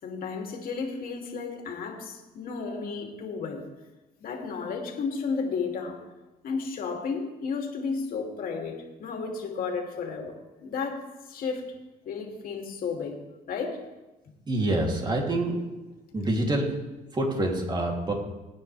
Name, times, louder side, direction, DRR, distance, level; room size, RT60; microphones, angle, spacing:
voice 1, 0.0-3.6 4.2-6.0 6.4-11.7 12.0-13.2 13.5-13.8, left 5 dB, 60° left, 1 dB, 2.9 m, -33 dB
voice 2, 14.5-15.6 16.1-16.8 17.1-18.1, right 1 dB, 25° right, 0 dB, 3.1 m, -26 dB
23.5 x 9.6 x 3.5 m, 1.1 s
cardioid pair, 110°, 17 cm